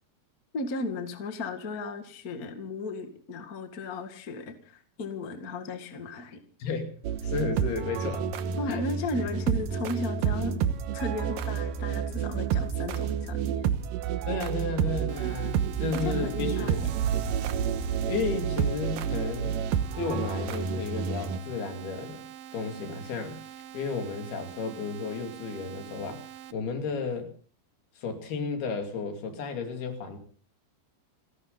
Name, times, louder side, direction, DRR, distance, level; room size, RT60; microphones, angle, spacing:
voice 1, 0.5-6.4 8.6-10.5 10.9-13.7 15.9-16.9, left 2 dB, 30° left, 7 dB, 1.8 m, -35 dB
voice 2, 6.6-7.0 7.2-8.3 8.7-8.8 14.3-16.9 18.1-19.6 19.9-22.2 22.5-27.3 28.0-30.2, left 4 dB, 80° left, 5 dB, 4.5 m, -33 dB
sound 1, 7.0-21.4, right 8 dB, 70° right, 2.5 m, -29 dB
sound 2, 15.1-26.5, right 11 dB, 85° right, 2.9 m, -45 dB
30.0 x 12.0 x 4.0 m, 0.43 s
omnidirectional pair, 4.5 m